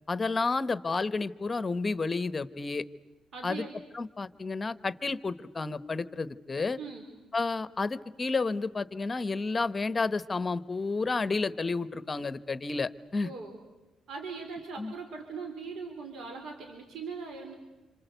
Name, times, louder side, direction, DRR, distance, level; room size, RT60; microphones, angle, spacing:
voice 1, 0.1-2.8 3.4-3.6 3.9-6.8 7.3-13.3 14.8-14.9, left 3 dB, 30° left, 15 dB, 1.1 m, -31 dB
voice 2, 3.3-3.8 6.8-7.1 13.2-13.6 14.1-17.5, right 4 dB, 65° right, 3 dB, 4.2 m, -40 dB
27.0 x 26.0 x 8.2 m, 1.1 s
cardioid pair, 90°, 0 cm